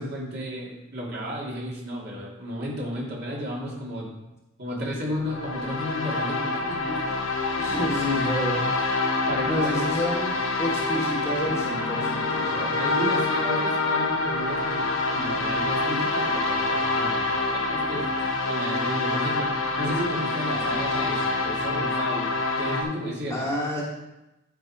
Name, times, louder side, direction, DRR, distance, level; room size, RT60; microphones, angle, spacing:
voice 1, 0.0-4.1 4.6-7.0 7.5-7.8 9.3-9.9 12.8-14.9 15.1-18.1 18.4-19.5 19.8-22.3 22.6-23.5, equal, 55° right, -4 dB, 2.6 m, -33 dB
sound 1, 5.2-22.8, left 3 dB, 90° left, 1.2 m, -26 dB
voice 2, 7.6-9.0 9.5-12.8 23.3-23.8, left 1 dB, 15° left, -3 dB, 1.5 m, -29 dB
10.0 x 4.7 x 4.8 m, 0.95 s
head